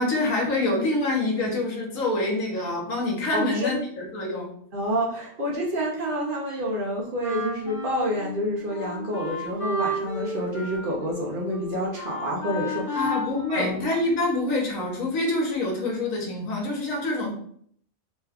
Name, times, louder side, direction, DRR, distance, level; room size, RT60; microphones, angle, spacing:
voice 1, 0.0-4.5 12.9-17.3, left 2 dB, 80° left, 0 dB, 1.3 m, -26 dB
voice 2, 3.3-3.8 4.7-13.1 13.5-13.9, equal, 50° right, -3 dB, 0.7 m, -28 dB
Wind instrument woodwind instrument, 7.2-14.4, left 1 dB, 60° left, 1.4 m, -33 dB
3.1 x 2.2 x 3.4 m, 0.62 s
omnidirectional pair, 1.4 m